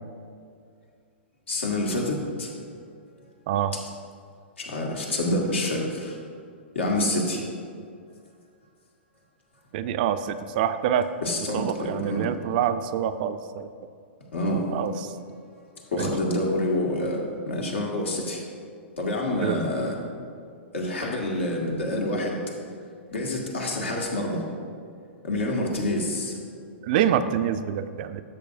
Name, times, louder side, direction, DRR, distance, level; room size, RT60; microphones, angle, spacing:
voice 1, 1.5-2.5 4.6-6.2 6.7-7.5 11.2-12.3 14.3-14.7 15.9-18.4 19.0-20.0 20.7-22.4 23.1-24.4 25.2-26.4, left 1 dB, 70° left, -1 dB, 1.7 m, -27 dB
voice 2, 9.7-11.1 11.5-13.7 14.7-14.9 16.0-16.1 19.4-19.6 26.8-28.2, right 9 dB, 45° right, 10 dB, 0.4 m, -26 dB
12.5 x 6.7 x 2.5 m, 2.3 s
figure-of-eight pair, 110°, 7 cm